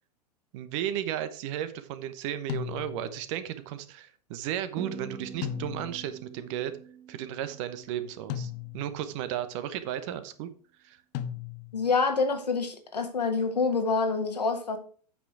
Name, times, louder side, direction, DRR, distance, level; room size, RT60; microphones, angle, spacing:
voice 1, 0.5-6.7 7.1-10.5 10.8-11.0, right 11 dB, 50° right, 1.0 m, -34 dB
sound 1, 2.5-3.3 5.4-6.2 8.3-9.1 11.1-11.9, left 10 dB, 45° left, 0.7 m, -36 dB
sound 2, 4.8-9.1, right 5 dB, 15° right, 0.6 m, -46 dB
voice 2, 11.7-14.8, left 4 dB, 80° left, 1.6 m, -27 dB
8.4 x 5.9 x 4.6 m
figure-of-eight pair, 90°, 21 cm